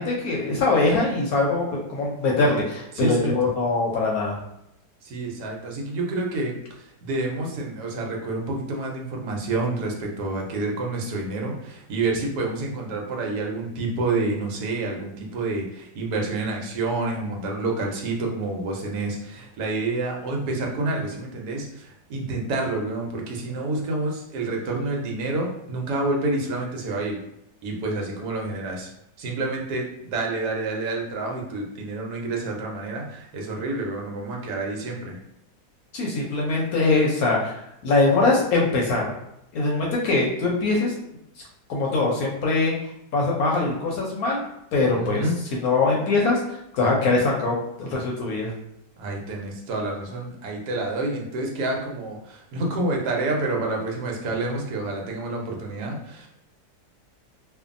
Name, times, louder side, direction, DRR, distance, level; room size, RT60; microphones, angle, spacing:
voice 1, 0.0-4.4 35.9-39.1 39.5-40.9 41.7-42.7 43.1-44.4 44.7-45.2 45.5-48.5, left 3 dB, 70° left, -2 dB, 1.0 m, -22 dB
voice 2, 3.0-3.3 5.0-27.2 27.6-28.9 29.2-35.2 45.0-45.4 49.0-56.3, right 2 dB, 75° right, 0 dB, 1.2 m, -28 dB
2.6 x 2.5 x 2.5 m, 0.81 s
omnidirectional pair, 1.8 m